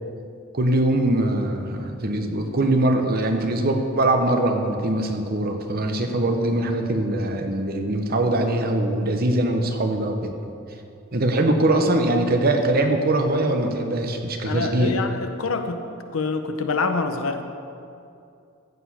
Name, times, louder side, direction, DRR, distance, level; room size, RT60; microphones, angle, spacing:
voice 1, 0.5-10.3 11.1-14.9, right 1 dB, 50° right, 5 dB, 0.9 m, -22 dB
voice 2, 14.4-15.8 16.1-17.4, left 4 dB, 85° left, 7 dB, 0.7 m, -26 dB
14.5 x 5.0 x 5.6 m, 2.5 s
head